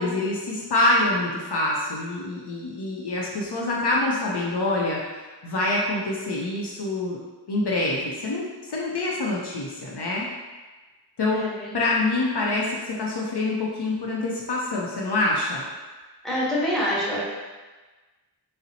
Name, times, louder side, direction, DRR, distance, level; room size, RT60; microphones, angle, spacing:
voice 1, 0.0-5.0 5.4-7.2 7.5-10.3 11.2-11.4 11.7-15.7, left 2 dB, 65° left, -4 dB, 0.6 m, -25 dB
voice 2, 11.3-11.7 16.2-17.2, equal, ahead, -8 dB, 1.0 m, -26 dB
3.9 x 2.0 x 2.7 m, 1.3 s
wide cardioid pair, 40°, 43 cm